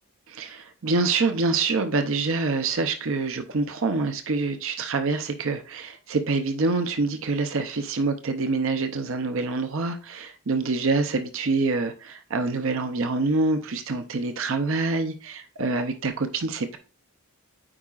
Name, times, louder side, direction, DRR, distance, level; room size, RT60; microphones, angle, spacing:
voice 1, 0.3-16.8, right 3 dB, 60° right, 0.6 m, -26 dB
8.6 x 4.7 x 2.4 m
head